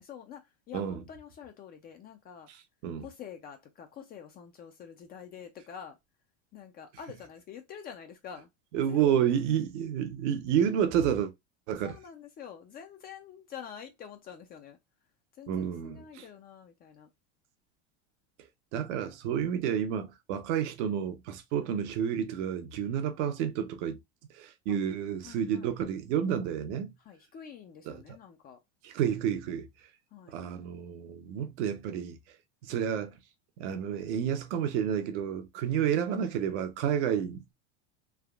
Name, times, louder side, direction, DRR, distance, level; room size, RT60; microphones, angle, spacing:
voice 1, 0.0-2.5 3.0-6.0 6.5-8.5 8.9-9.1 11.8-14.8 15.3-17.1 21.6-21.7 24.7-24.8 25.2-25.7 27.0-28.6 30.1-30.4, left 8 dB, 25° left, 0.3 m, -47 dB
voice 2, 8.7-11.3 11.7-12.0 15.5-16.2 18.7-24.0 24.3-26.9 27.9-28.0 28.8-29.7 30.3-32.2 32.6-33.1 33.6-37.5, right 9 dB, 75° right, 0.8 m, -30 dB
3.4 x 2.4 x 2.3 m
supercardioid pair, 135°, 36 cm